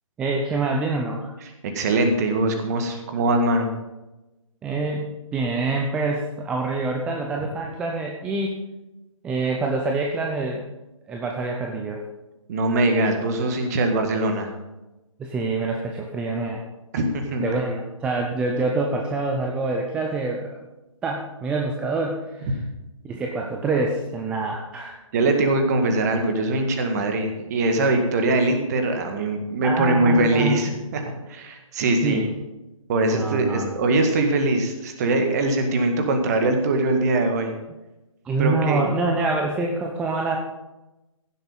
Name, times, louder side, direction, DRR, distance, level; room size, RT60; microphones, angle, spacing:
voice 1, 0.2-1.3 4.6-8.6 9.2-10.6 11.1-12.0 15.2-16.6 17.4-20.5 21.0-22.6 23.0-25.0 29.6-30.6 32.0-32.3 33.1-33.7 38.2-40.4, right 3 dB, 5° right, 1 dB, 0.5 m, -26 dB
voice 2, 1.4-3.7 12.5-14.6 16.9-17.4 25.1-31.0 31.3-32.2 32.9-37.5 38.4-38.8, right 2 dB, 30° right, 5 dB, 1.8 m, -22 dB
15.5 x 7.8 x 5.5 m, 1.0 s
figure-of-eight pair, 140°, 18 cm